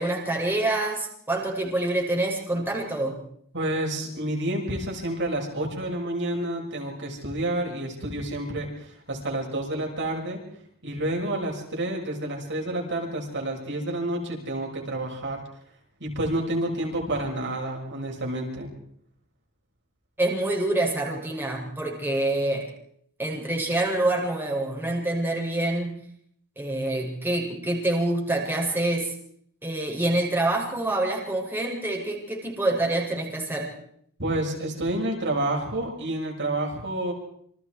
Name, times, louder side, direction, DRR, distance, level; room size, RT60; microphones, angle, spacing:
voice 1, 0.0-3.2 20.2-22.7 23.2-26.0 26.6-29.1 29.6-33.7, right 2 dB, 10° right, -2 dB, 7.0 m, -26 dB
voice 2, 3.5-10.4 10.8-15.4 16.0-18.7 34.2-37.1, right 1 dB, 55° right, 0 dB, 6.4 m, -29 dB
29.0 x 26.5 x 4.8 m, 0.66 s
head